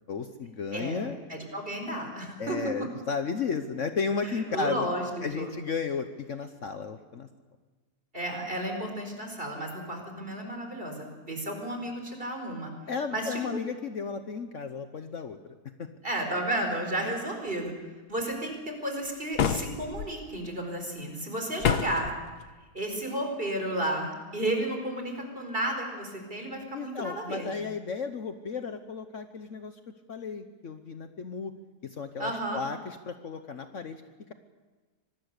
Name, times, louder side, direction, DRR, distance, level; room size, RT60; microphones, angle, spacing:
voice 1, 0.1-1.2 2.4-4.9 5.2-7.3 12.9-15.9 26.7-29.8 30.1-31.5 31.8-34.0, left 5 dB, 55° left, 8 dB, 1.2 m, -34 dB
voice 2, 0.7-2.6 4.2-5.1 5.4-5.5 8.1-12.7 13.1-13.4 16.0-17.7 18.1-22.1 22.7-27.5 32.2-32.6, right 1 dB, 35° right, 3 dB, 4.6 m, -32 dB
sound 1, 19.3-20.1 21.6-22.1, left 7 dB, 80° left, 1.6 m, -27 dB
25.0 x 19.5 x 6.7 m, 1.3 s
omnidirectional pair, 1.7 m